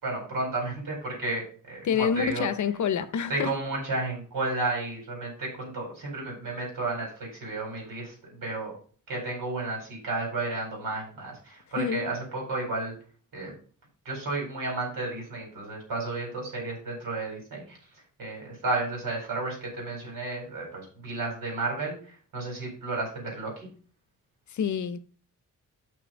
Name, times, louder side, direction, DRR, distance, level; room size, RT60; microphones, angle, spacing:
voice 1, 0.0-2.5 3.3-8.7 9.1-12.9 13.3-13.5 14.0-17.8 18.2-23.7, right 2 dB, 85° right, 4.8 m, -32 dB
voice 2, 1.8-3.5 11.8-12.1 24.5-25.0, left 7 dB, 60° left, 0.7 m, -27 dB
6.4 x 6.0 x 5.2 m
wide cardioid pair, 160°, 33 cm